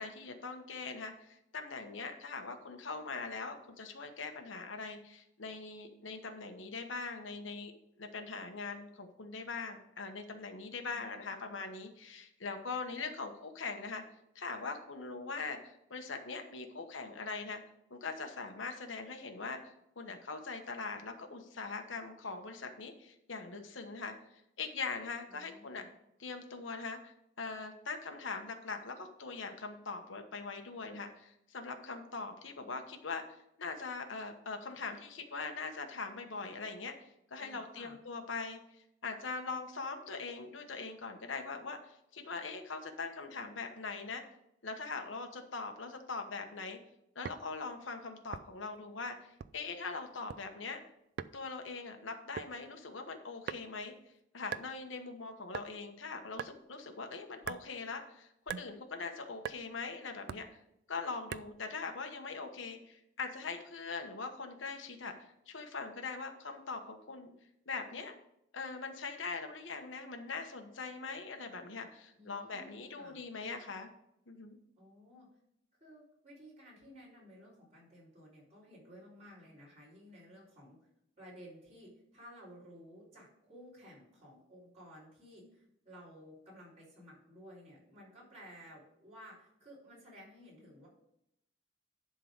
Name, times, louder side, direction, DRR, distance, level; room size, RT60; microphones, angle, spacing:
voice 1, 0.0-7.7 8.0-14.0 14.3-17.6 17.9-25.8 26.2-38.6 39.0-44.2 44.6-46.8 47.1-50.8 51.3-54.0 54.3-58.3 58.6-60.5 60.9-67.3 67.7-68.1 68.5-73.9 74.3-74.6, left 4 dB, 85° left, 5 dB, 1.2 m, -42 dB
voice 2, 10.9-11.5 25.3-25.9 37.3-38.0 72.1-73.2 74.8-75.3 75.8-80.8 81.2-90.9, equal, 35° right, -7 dB, 4.2 m, -55 dB
sound 1, 47.2-47.5 48.3-48.7 49.4-49.7 50.1-50.4 51.2-51.4 52.4-52.6 53.5-53.9 54.5-54.7 55.5-55.7 56.4-56.6 57.4-57.7 58.5-58.7 59.4-59.6 60.3-60.5 61.3-61.6, right 7 dB, 55° right, 0.3 m, -41 dB
11.0 x 3.9 x 6.5 m, 0.78 s
head